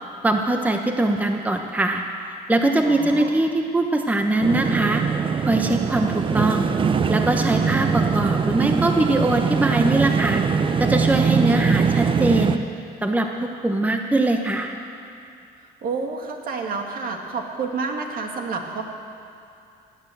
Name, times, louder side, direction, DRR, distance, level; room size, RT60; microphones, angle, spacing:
voice 1, 0.2-2.0 2.5-5.0 5.4-6.7 7.1-10.4 10.8-12.6 13.0-14.7, right 2 dB, 10° right, 4 dB, 0.9 m, -22 dB
voice 2, 2.8-3.3 15.6-18.8, right 4 dB, 60° right, 2 dB, 2.0 m, -29 dB
sound 1, 4.4-12.6, right 6 dB, 30° right, 0.6 m, -22 dB
18.0 x 9.4 x 7.8 m, 2.5 s
cardioid pair, 110°, 17 cm